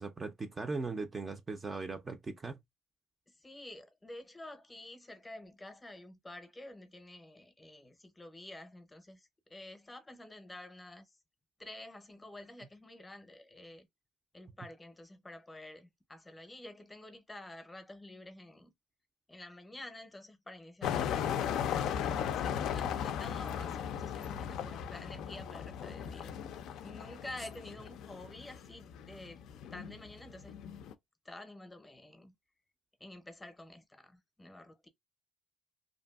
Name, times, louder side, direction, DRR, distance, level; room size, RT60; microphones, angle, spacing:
voice 1, 0.0-2.6, right 3 dB, 25° right, 0.4 m, -39 dB
voice 2, 3.3-11.2 11.6-13.9 14.3-18.7 19.3-26.3 26.8-29.4 29.7-30.5 31.2-32.3 33.0-34.9, left 1 dB, 15° left, 0.6 m, -49 dB
sound 1, 20.8-30.9, left 8 dB, 80° left, 0.3 m, -37 dB
2.6 x 2.6 x 2.3 m
cardioid pair, 115°, 0 cm